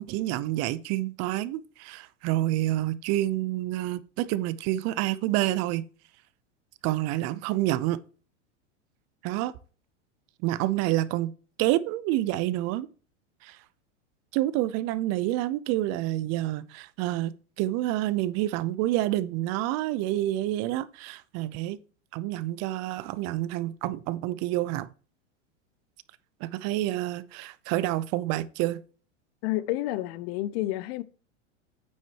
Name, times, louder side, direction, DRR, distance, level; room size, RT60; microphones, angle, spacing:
voice 1, 0.0-5.8 6.8-8.0 9.2-9.5 10.4-11.3 11.6-12.9 13.4-13.6 14.3-21.8 22.1-24.9 26.4-28.8, right 15 dB, 45° right, 0.7 m, -28 dB
voice 2, 29.4-31.0, left 15 dB, 55° left, 0.8 m, -30 dB
9.2 x 7.3 x 3.0 m
hypercardioid pair, 115°, 36 cm